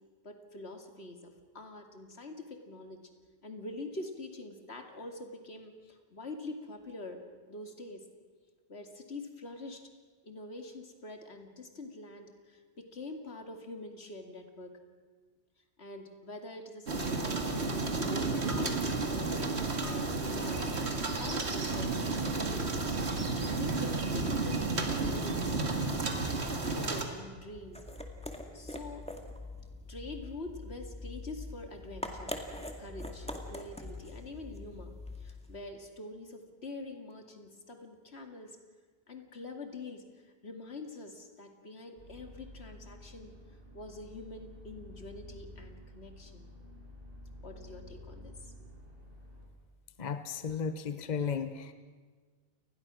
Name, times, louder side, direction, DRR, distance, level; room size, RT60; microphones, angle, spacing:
voice 1, 0.2-3.0 3.4-8.0 8.7-9.9 10.2-14.8 15.8-19.3 19.8-20.7 21.2-22.7 23.1-26.2 26.6-27.8 28.5-29.1 29.9-32.3 32.6-38.6 39.1-43.4 43.7-46.5 47.4-48.6, left 2 dB, 80° left, 4 dB, 2.7 m, -45 dB
sound 1, 16.9-27.1, right 3 dB, 90° right, 2.4 m, -32 dB
sound 2, 27.4-35.6, left 1 dB, 5° left, 2.1 m, -43 dB
sound 3, 42.0-49.5, left 1 dB, 60° right, 6.6 m, -51 dB
voice 2, 50.0-51.7, left 6 dB, 45° left, 10 dB, 1.0 m, -34 dB
29.0 x 20.5 x 6.3 m, 1.5 s
omnidirectional pair, 1.1 m